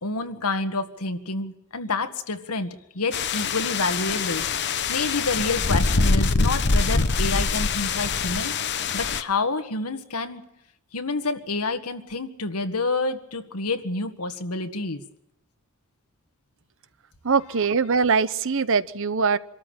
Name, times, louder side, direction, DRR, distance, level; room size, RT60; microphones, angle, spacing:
voice 1, 0.0-2.7 2.9-8.5 8.9-10.4 10.9-15.0, left 3 dB, 80° left, 8 dB, 1.8 m, -28 dB
sound 1, 3.1-9.2, left 4 dB, 50° left, 1.1 m, -24 dB
voice 2, 17.2-19.4, right 5 dB, 60° right, 15 dB, 0.8 m, -22 dB
25.0 x 13.5 x 8.9 m, 0.85 s
head